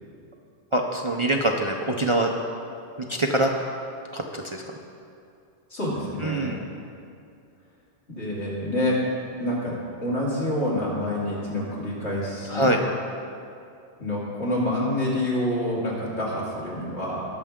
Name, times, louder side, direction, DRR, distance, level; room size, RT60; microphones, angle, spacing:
voice 1, 0.7-2.3 3.0-3.5 4.1-4.6 6.2-6.6 12.5-12.8, right 1 dB, 35° right, 0 dB, 0.5 m, -24 dB
voice 2, 5.7-6.5 8.1-9.0 9.4-9.7 10.0-12.7 14.0-17.2, left 1 dB, 75° left, -7 dB, 3.2 m, -27 dB
19.5 x 6.7 x 3.6 m, 2.5 s
omnidirectional pair, 1.2 m